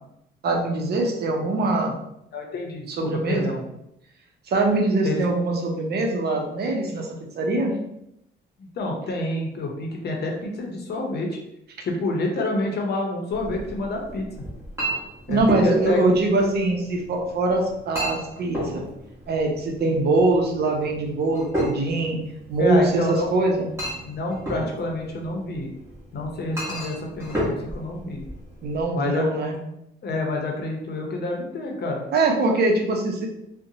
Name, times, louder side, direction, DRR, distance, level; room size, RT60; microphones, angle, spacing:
voice 1, 0.4-2.0 2.9-3.6 4.5-7.1 7.4-7.7 15.3-18.8 19.3-22.2 22.5-23.7 28.6-29.6 32.1-33.3, right 2 dB, 55° right, 1 dB, 0.6 m, -22 dB
voice 2, 2.3-3.6 5.0-5.2 8.8-11.4 11.8-14.3 15.3-16.0 22.6-23.3 24.0-25.7 26.1-28.2 28.9-29.2 30.0-32.0, left 2 dB, 55° left, 1 dB, 0.7 m, -28 dB
Chink clink, 13.3-28.8, equal, 15° right, 1.1 m, -33 dB
2.6 x 2.1 x 2.7 m, 0.81 s
cardioid pair, 90°, 20 cm